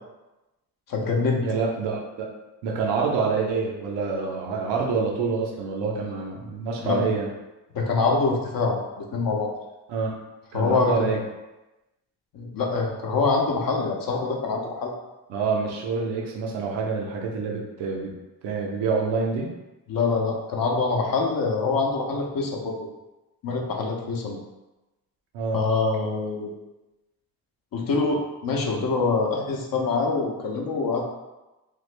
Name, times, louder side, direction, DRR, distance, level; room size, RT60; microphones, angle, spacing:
voice 1, 0.9-1.4 6.8-7.1 7.7-9.5 10.5-11.1 12.3-14.9 19.9-22.9 23.4-24.4 25.5-26.5 27.7-31.0, left 4 dB, 55° left, 0 dB, 0.7 m, -25 dB
voice 2, 1.4-2.3 2.6-7.3 9.9-10.2 10.5-11.2 15.3-18.1 18.4-19.5 25.3-25.6, right 4 dB, 85° right, -1 dB, 0.7 m, -27 dB
3.3 x 2.0 x 3.2 m, 1.0 s
supercardioid pair, 65°, 40 cm